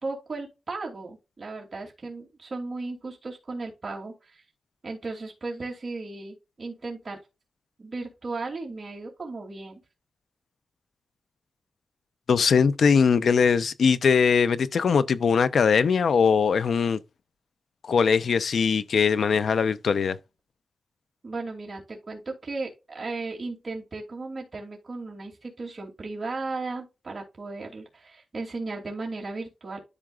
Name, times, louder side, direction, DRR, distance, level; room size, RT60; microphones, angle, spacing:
voice 1, 0.0-4.4 4.8-7.2 7.8-9.8 21.2-29.8, right 3 dB, 40° right, 2.8 m, -36 dB
voice 2, 12.3-17.0 17.8-20.2, left 6 dB, 80° left, 0.6 m, -21 dB
12.5 x 4.8 x 2.5 m
wide cardioid pair, 125°, 0 cm